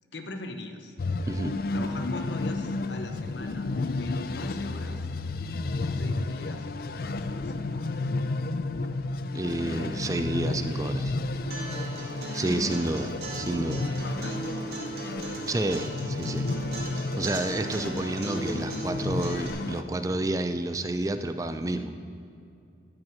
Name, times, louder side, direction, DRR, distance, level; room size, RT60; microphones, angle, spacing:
voice 1, 0.1-1.0 1.7-3.7 4.0-5.1 5.8-6.7 7.0-8.1 12.4-12.7 13.9-14.4, left 2 dB, 75° left, 6 dB, 0.9 m, -41 dB
sound 1, 1.0-19.8, left 2 dB, 55° left, 0.4 m, -32 dB
voice 2, 9.3-11.1 12.3-13.8 15.5-16.5 16.9-21.9, right 2 dB, 20° right, 9 dB, 0.4 m, -30 dB
Acoustic guitar, 11.5-19.5, right 1 dB, 60° right, 2.1 m, -37 dB
13.0 x 6.3 x 6.0 m, 2.5 s
head